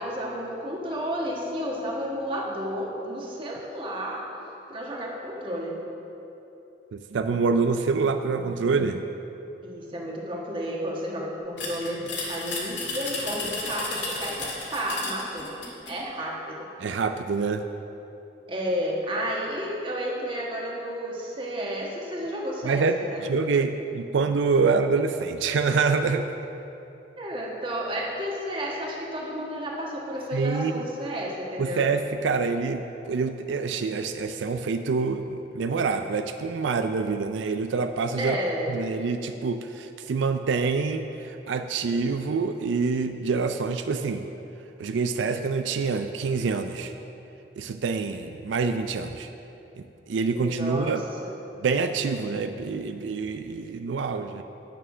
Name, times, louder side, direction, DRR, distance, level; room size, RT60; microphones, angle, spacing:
voice 1, 0.0-4.3 4.7-5.8 9.6-15.5 15.9-16.7 18.5-23.2 27.2-31.8 38.2-38.8 50.3-51.3, equal, 30° right, -3 dB, 1.4 m, -32 dB
voice 2, 6.9-9.0 16.8-17.6 22.6-26.3 30.3-30.9 31.6-38.4 38.7-44.3 44.8-46.9 47.6-49.3 49.8-51.0 51.6-54.4, right 4 dB, 90° right, 8 dB, 0.4 m, -26 dB
sound 1, 11.6-16.0, left 3 dB, 75° left, 1.8 m, -33 dB
8.9 x 6.9 x 6.0 m, 3.0 s
head